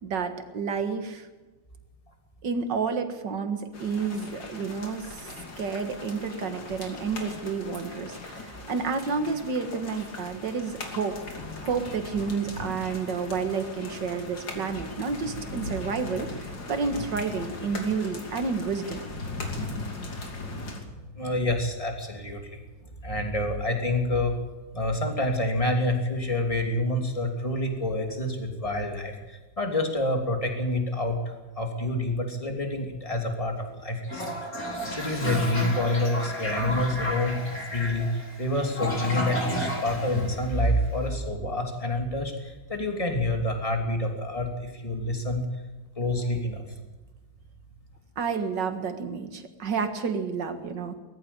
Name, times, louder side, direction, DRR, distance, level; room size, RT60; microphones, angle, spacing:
voice 1, 0.0-1.3 2.4-11.2 11.6-19.0 48.2-50.9, right 5 dB, 65° right, 8 dB, 2.3 m, -30 dB
sound 1, 3.7-20.8, left 2 dB, 65° left, 3.5 m, -39 dB
voice 2, 21.2-22.6 23.0-24.3 24.7-34.2 34.9-37.4 37.7-45.4 46.0-46.6, left 1 dB, 15° left, 3 dB, 3.0 m, -27 dB
Toilet flush, 34.0-41.0, left 1 dB, 45° left, 4.8 m, -32 dB
20.5 x 14.5 x 8.6 m, 1.2 s
omnidirectional pair, 2.1 m